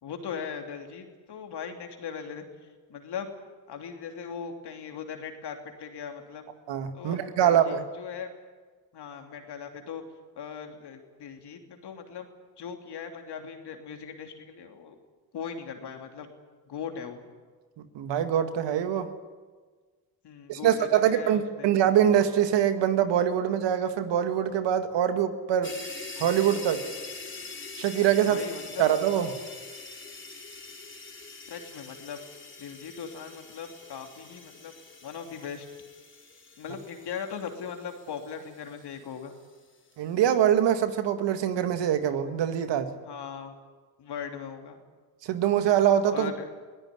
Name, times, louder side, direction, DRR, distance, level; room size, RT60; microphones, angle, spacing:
voice 1, 0.0-3.3 3.7-6.5 6.9-8.3 8.9-10.0 10.4-12.3 12.6-15.0 15.3-16.3 16.7-17.2 20.2-21.7 28.3-28.8 31.5-32.2 32.6-34.7 35.0-35.7 36.6-39.3 43.0-43.6 44.0-44.8 46.1-46.5, left 7 dB, 60° left, 4 dB, 3.3 m, -39 dB
voice 2, 6.7-7.8 17.9-19.1 20.5-25.7 26.2-26.8 27.8-28.4 28.8-29.3 40.0-42.9 45.2-46.3, right 10 dB, 70° right, 9 dB, 2.0 m, -24 dB
sound 1, 25.6-39.3, left 3 dB, 25° left, 3.3 m, -44 dB
22.0 x 17.5 x 9.8 m, 1.4 s
hypercardioid pair, 50°, 44 cm